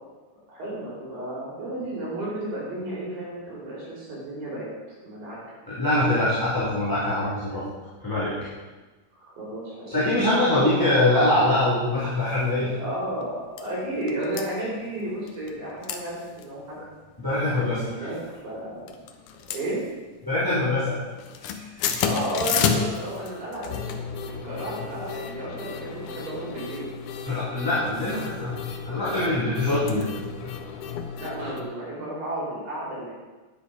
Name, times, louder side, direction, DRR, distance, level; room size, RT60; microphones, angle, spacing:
voice 1, 0.5-4.7 5.0-5.4 9.2-9.9 10.3-10.8 12.6-16.8 17.5-18.9 19.5-19.8 21.7-26.9 31.1-33.1, right 1 dB, 85° right, -5 dB, 5.9 m, -33 dB
voice 2, 5.7-7.6 8.0-8.3 9.9-12.7 17.2-18.1 20.2-21.0 27.3-28.6 28.8-30.1 30.4-30.5, left 1 dB, 5° left, -10 dB, 2.3 m, -23 dB
sound 1, 12.3-12.5 12.9-13.0 13.2-13.7 14.1-14.4 15.3-15.6 15.8-16.0 16.3-16.4 16.9-17.3 18.0-18.6 18.9-20.3 20.5-20.8 21.1-31.6, left 7 dB, 70° left, 2.2 m, -32 dB
10.0 x 9.6 x 5.5 m, 1.3 s
omnidirectional pair, 3.9 m